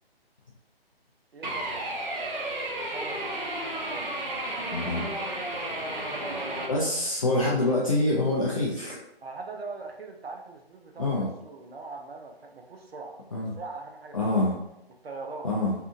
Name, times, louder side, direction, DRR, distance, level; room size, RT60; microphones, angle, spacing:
voice 1, 1.3-4.8 5.9-6.7 9.2-11.1 11.4-14.3 15.0-15.5, right 3 dB, 75° right, 2 dB, 0.6 m, -42 dB
sound 1, 1.4-6.7, right 1 dB, 50° right, 1.0 m, -32 dB
voice 2, 4.7-5.1 6.7-9.0 11.0-11.3 13.3-13.6 14.1-14.5 15.4-15.7, left 2 dB, 35° left, -6 dB, 0.4 m, -25 dB
2.7 x 2.4 x 2.5 m, 0.85 s
figure-of-eight pair, 145°, 31 cm